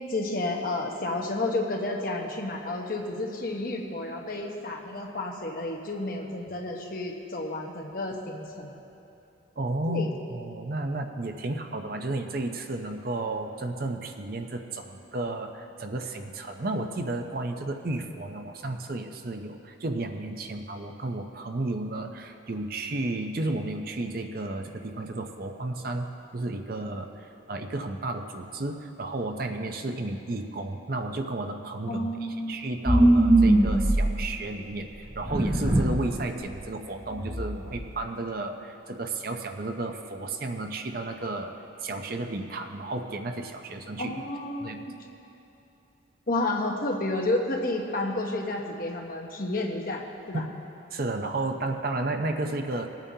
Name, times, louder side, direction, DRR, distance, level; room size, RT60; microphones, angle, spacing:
voice 1, 0.1-8.7 9.9-10.1 31.9-32.6 44.0-45.0 46.3-50.4, left 2 dB, 50° left, 1 dB, 1.1 m, -31 dB
voice 2, 9.6-32.1 32.5-41.5 41.8-44.1 44.6-44.8 50.3-50.6 50.9-52.9, right 2 dB, 50° right, 5 dB, 0.7 m, -33 dB
sound 1, 32.9-34.4 35.1-36.1 36.4-36.6 37.0-37.9, right 1 dB, 15° right, 0.7 m, -22 dB
21.0 x 9.0 x 2.8 m, 2.8 s
head